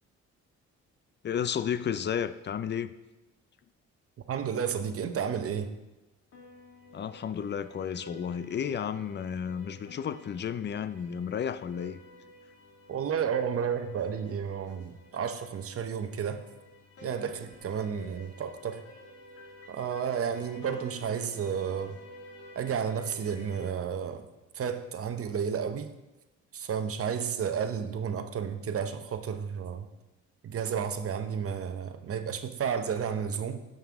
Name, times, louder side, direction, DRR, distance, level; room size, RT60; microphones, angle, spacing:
voice 1, 1.2-2.9 6.9-12.0, left 8 dB, 35° left, 0.5 m, -32 dB
voice 2, 4.3-5.8 12.9-16.4 17.0-18.8 19.7-22.0 22.5-24.3 24.5-25.9 26.5-29.9 30.4-33.6, right 7 dB, 50° right, 0.8 m, -32 dB
sound 1, 6.3-23.7, left 1 dB, 55° left, 2.2 m, -51 dB
13.0 x 5.5 x 3.6 m
cardioid pair, 90°, 30 cm